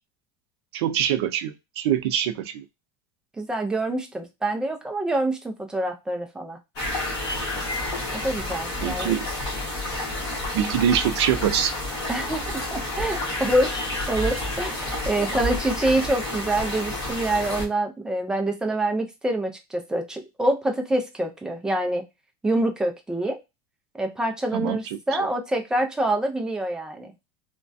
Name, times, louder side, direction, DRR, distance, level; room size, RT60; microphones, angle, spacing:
voice 1, 0.7-2.6 8.8-9.3 10.5-11.7 24.5-24.8 25.1-25.3, right 10 dB, 80° right, 0.5 m, -24 dB
voice 2, 3.4-6.6 8.1-9.1 12.1-22.0 22.4-23.4 23.9-27.1, right 1 dB, 5° right, 0.4 m, -26 dB
sound 1, 6.8-17.7, left 1 dB, 30° left, 1.4 m, -30 dB
3.2 x 2.2 x 2.5 m
supercardioid pair, 170°, 13 cm